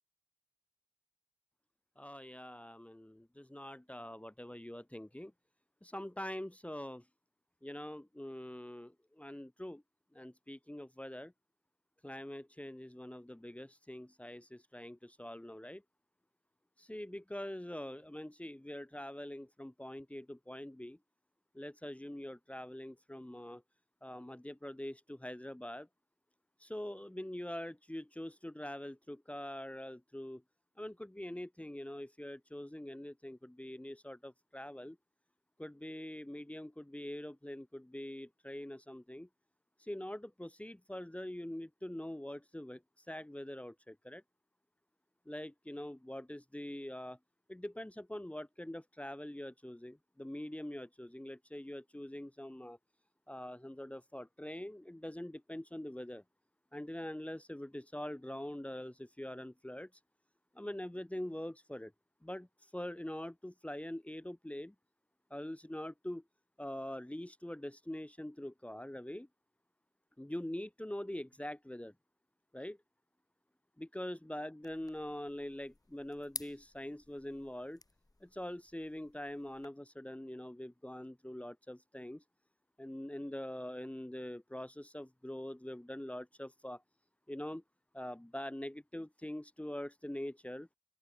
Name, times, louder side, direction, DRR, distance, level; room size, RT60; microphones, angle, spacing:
voice 1, 2.0-5.3 5.8-7.0 7.6-9.8 10.1-11.3 12.0-15.8 16.8-21.0 21.5-23.6 24.0-25.9 26.6-30.4 30.8-35.0 35.6-39.3 39.8-44.2 45.3-47.2 47.5-52.8 53.3-56.2 56.7-59.9 60.5-61.9 62.2-62.5 62.7-64.7 65.3-66.2 66.6-69.3 70.2-71.9 72.5-72.8 73.8-77.8 78.2-82.2 82.8-86.8 87.3-87.6 87.9-90.7, left 1 dB, 10° left, 1.7 m, -44 dB
sound 1, 74.6-79.7, left 2 dB, 35° left, 3.3 m, -52 dB
open air
wide cardioid pair, 80°, 11 cm